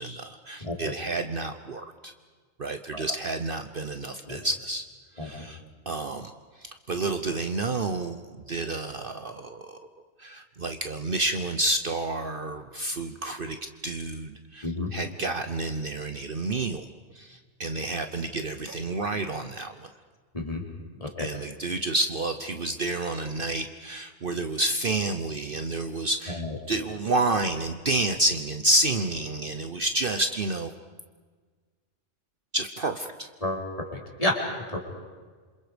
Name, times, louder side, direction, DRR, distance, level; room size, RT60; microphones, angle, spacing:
voice 1, 0.0-2.1 2.6-4.8 5.1-6.3 6.6-9.8 10.2-13.6 13.8-16.9 17.1-19.9 21.2-26.4 26.7-30.7 32.5-33.3, right 2 dB, 50° right, 7 dB, 1.1 m, -29 dB
voice 2, 33.4-34.4 34.7-34.8, left 1 dB, 30° left, -1 dB, 4.5 m, -30 dB
28.0 x 27.0 x 5.2 m, 1.5 s
omnidirectional pair, 1.3 m